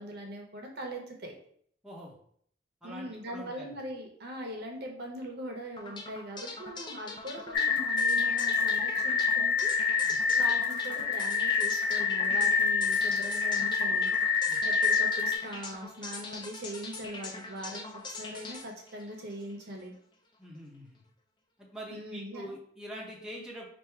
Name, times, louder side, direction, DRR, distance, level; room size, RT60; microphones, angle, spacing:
voice 1, 0.0-1.3 2.8-9.7 10.4-14.1 14.6-17.9 18.2-19.9 21.9-22.5, right 1 dB, 60° right, 1 dB, 0.8 m, -41 dB
voice 2, 1.8-2.2 2.8-3.8 10.0-10.2 14.5-14.6 20.4-21.0 21.6-23.7, equal, 5° right, -4 dB, 0.7 m, -44 dB
sound 1, 5.8-19.8, left 3 dB, 25° left, 0.5 m, -43 dB
sound 2, 7.5-15.4, left 5 dB, 80° left, 0.6 m, -27 dB
3.5 x 2.5 x 4.5 m, 0.62 s
head